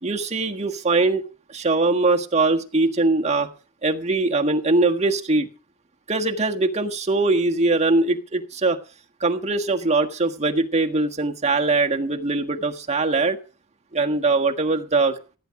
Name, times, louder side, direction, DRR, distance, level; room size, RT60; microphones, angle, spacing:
voice 1, 0.0-1.2 1.5-3.5 3.8-5.5 6.1-8.8 9.2-13.4 13.9-15.1, right 3 dB, 30° right, 4 dB, 1.5 m, -21 dB
16.0 x 9.9 x 5.9 m, 0.37 s
head